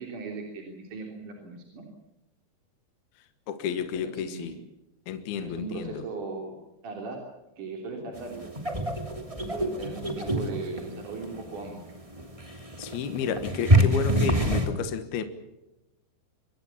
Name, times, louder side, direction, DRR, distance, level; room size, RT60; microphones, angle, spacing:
voice 1, 0.0-1.9 3.9-4.6 5.4-6.6 6.8-7.2 7.6-8.8 9.5-11.9, right 3 dB, 50° right, 1 dB, 4.5 m, -38 dB
voice 2, 3.5-4.6 5.1-6.0 12.5-15.2, left 7 dB, 65° left, 9 dB, 3.1 m, -31 dB
sound 1, 8.2-14.7, right 1 dB, 10° right, 1.7 m, -27 dB
26.0 x 21.5 x 7.2 m, 0.97 s
omnidirectional pair, 5.0 m